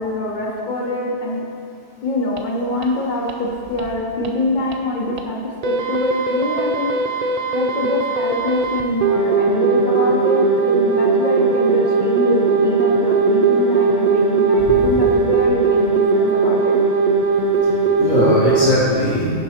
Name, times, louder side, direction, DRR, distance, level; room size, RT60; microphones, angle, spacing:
voice 1, 0.0-1.4 2.0-6.9 7.5-16.8, left 1 dB, 45° left, -2 dB, 0.9 m, -24 dB
sound 1, 2.4-2.5 2.8-2.9 3.3-3.4 3.8-3.9 4.2-4.3 4.7-4.8 5.2-5.3 5.6-18.8, right 4 dB, 90° right, 0.3 m, -18 dB
voice 2, 14.6-14.9 17.6-19.3, left 1 dB, 75° left, -12 dB, 1.8 m, -20 dB
6.3 x 5.3 x 4.3 m, 2.7 s
omnidirectional pair, 1.3 m